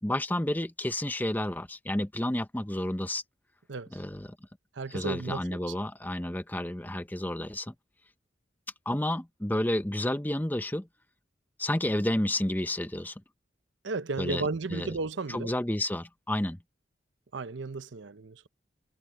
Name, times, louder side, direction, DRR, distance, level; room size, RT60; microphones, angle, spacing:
voice 1, 0.0-3.2 3.9-4.4 4.9-7.7 8.9-10.9 11.6-13.1 14.2-14.4 14.7-14.9 15.3-16.6, left 1 dB, 10° left, 0.9 m, -30 dB
voice 2, 3.7-4.0 4.7-5.7 13.8-15.5 17.3-18.5, right 3 dB, 85° right, 0.8 m, -34 dB
head